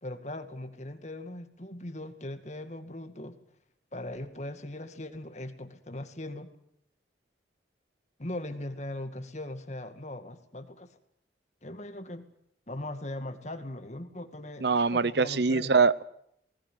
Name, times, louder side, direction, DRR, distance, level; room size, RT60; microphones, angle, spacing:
voice 1, 0.0-3.4 3.9-6.5 8.2-10.9 11.6-12.3 12.7-15.7, left 1 dB, 40° left, 8 dB, 2.1 m, -39 dB
voice 2, 14.6-16.0, right 4 dB, 65° right, 18 dB, 0.8 m, -23 dB
19.5 x 19.5 x 9.6 m, 0.72 s
head